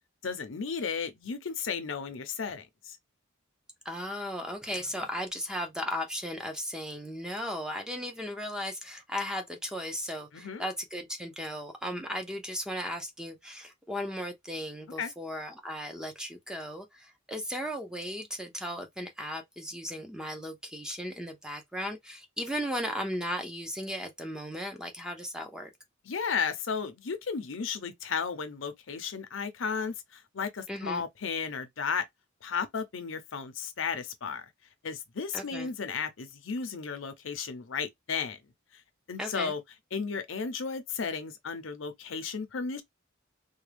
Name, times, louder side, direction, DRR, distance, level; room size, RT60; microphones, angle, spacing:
voice 1, 0.2-3.0 10.3-10.6 15.0-15.1 26.1-32.1 32.4-34.5 34.8-38.4 39.1-39.6 39.9-42.8, left 5 dB, 70° left, 0.6 m, -34 dB
voice 2, 3.8-25.7 30.7-31.0 35.3-35.7 39.2-39.5, equal, 5° right, 0.6 m, -36 dB
3.4 x 2.3 x 3.3 m
head